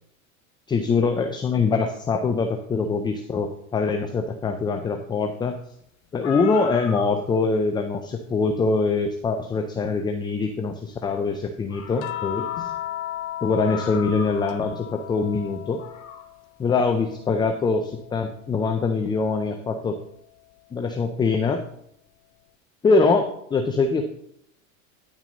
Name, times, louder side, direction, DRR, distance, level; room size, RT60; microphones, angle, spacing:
voice 1, 0.7-5.6 6.1-12.7 13.4-15.8 16.6-20.0 20.7-21.6 22.8-24.0, left 4 dB, 10° left, 5 dB, 0.4 m, -23 dB
sound 1, 5.8-5.9 6.1-7.5 8.9-9.0 11.3-11.4 11.7-12.9 13.2-13.3 13.6-14.6 15.6-16.3, left 6 dB, 40° left, 1.4 m, -38 dB
sound 2, 12.0-16.5 16.8-18.5 20.0-20.2, left 12 dB, 80° left, 0.6 m, -36 dB
10.5 x 6.1 x 3.9 m, 0.73 s
supercardioid pair, 120°, 42 cm